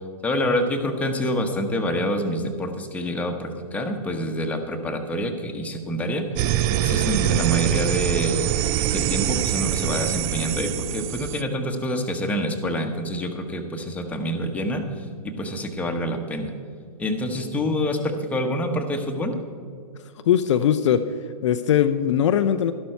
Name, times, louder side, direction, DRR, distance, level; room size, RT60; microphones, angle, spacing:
voice 1, 0.2-8.5 8.9-15.1 15.4-16.5 17.0-19.4, equal, 5° left, 3 dB, 1.1 m, -27 dB
sound 1, 6.4-11.4, right 12 dB, 25° right, 0.3 m, -24 dB
voice 2, 20.2-21.0 21.4-22.7, left 9 dB, 50° left, 9 dB, 0.5 m, -20 dB
12.5 x 12.0 x 4.5 m, 2.1 s
figure-of-eight pair, 115°, 19 cm